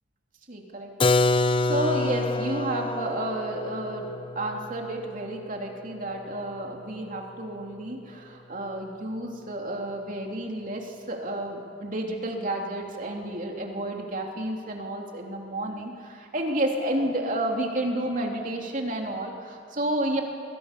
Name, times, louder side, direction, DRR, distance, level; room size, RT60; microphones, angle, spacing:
voice 1, 0.5-0.9 1.2-20.2, right 1 dB, 40° right, 1 dB, 3.1 m, -31 dB
Keyboard (musical), 1.0-6.6, left 2 dB, 25° left, 0.5 m, -27 dB
27.5 x 22.5 x 6.8 m, 2.4 s
head